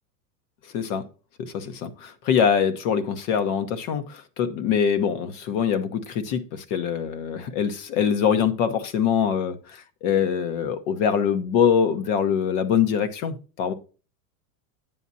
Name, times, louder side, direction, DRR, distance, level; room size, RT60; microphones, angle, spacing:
voice 1, 0.7-1.0 1.4-13.7, left 7 dB, 50° left, 1.2 m, -24 dB
9.1 x 8.4 x 2.7 m
supercardioid pair, 145°, 48 cm